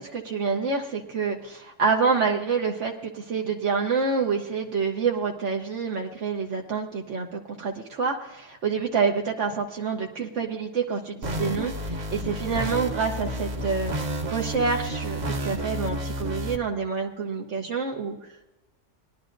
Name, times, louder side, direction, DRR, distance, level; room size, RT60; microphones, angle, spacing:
voice 1, 0.0-13.9 14.3-18.4, right 5 dB, 75° right, 1 dB, 1.3 m, -27 dB
sound 1, 11.2-16.6, equal, 40° right, 0.9 m, -31 dB
20.5 x 11.0 x 2.6 m, 0.99 s
omnidirectional pair, 1.2 m